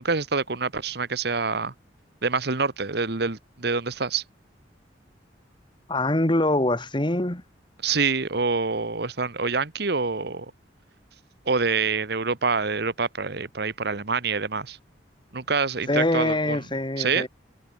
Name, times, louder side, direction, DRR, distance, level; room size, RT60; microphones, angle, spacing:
voice 1, 0.0-1.7 2.2-4.2 7.8-10.5 11.4-14.8 15.3-16.6 17.0-17.3, right 4 dB, 60° right, 1.4 m, -26 dB
voice 2, 5.9-7.4 15.9-17.3, left 1 dB, 25° left, 1.9 m, -24 dB
head